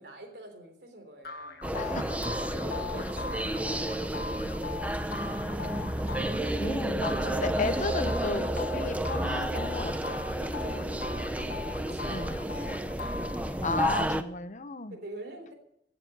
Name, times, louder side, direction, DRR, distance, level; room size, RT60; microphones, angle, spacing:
voice 1, 0.0-1.6 2.5-5.9 10.6-13.1 14.8-15.5, right 1 dB, 65° right, 4 dB, 3.5 m, -46 dB
sound 1, 1.2-13.8, left 5 dB, 60° left, 1.5 m, -41 dB
sound 2, 1.6-14.2, right 1 dB, 10° right, 0.8 m, -31 dB
voice 2, 1.8-2.2 6.6-10.2 12.1-12.4 13.6-15.0, left 3 dB, 45° left, 11 dB, 0.9 m, -34 dB
17.0 x 7.5 x 8.0 m, 0.74 s
head